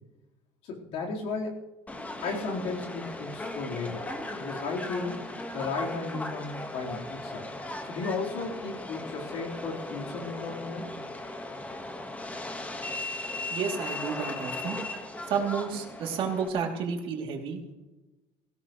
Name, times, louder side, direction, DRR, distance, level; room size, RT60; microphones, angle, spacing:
voice 1, 0.6-1.7 2.2-4.1 4.4-5.3 5.5-7.5 7.8-10.9, left 4 dB, 70° left, -3 dB, 4.1 m, -34 dB
Subway metro underground, 1.9-16.5, left 2 dB, 15° left, 1.5 m, -37 dB
voice 2, 13.5-14.8 15.3-17.6, right 6 dB, 55° right, 1 dB, 2.9 m, -31 dB
17.5 x 17.0 x 3.2 m, 1.1 s
cardioid pair, 130°, 11 cm